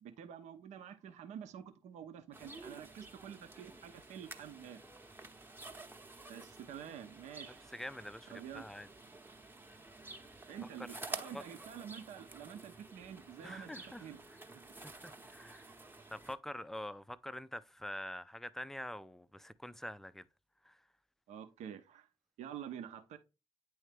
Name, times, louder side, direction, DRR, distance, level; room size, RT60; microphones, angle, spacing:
voice 1, 0.0-4.8 6.3-7.7 8.3-8.6 10.5-14.2 21.3-22.1 22.4-23.2, right 9 dB, 65° right, 0.7 m, -48 dB
sound 1, 2.3-16.3, right 2 dB, 15° right, 0.8 m, -51 dB
voice 2, 7.5-8.9 11.3-11.4 13.4-14.1 14.8-15.7 16.1-20.2 20.6-20.8, left 1 dB, 5° left, 0.4 m, -45 dB
9.1 x 3.2 x 3.3 m
hypercardioid pair, 45°, 13 cm